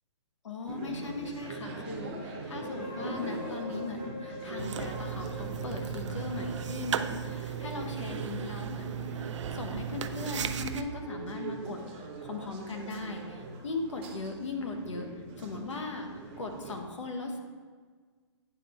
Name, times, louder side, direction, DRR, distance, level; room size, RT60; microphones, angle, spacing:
voice 1, 0.4-15.1 15.4-16.1 16.4-17.4, left 3 dB, 90° left, 3 dB, 1.1 m, -38 dB
sound 1, 0.7-16.8, right 2 dB, 20° right, 0.6 m, -42 dB
sound 2, 2.5-8.5, left 2 dB, 20° left, 0.7 m, -44 dB
sound 3, 4.6-10.8, right 9 dB, 85° right, 0.4 m, -36 dB
9.0 x 3.3 x 4.3 m, 1.5 s
hypercardioid pair, 170°, 15 cm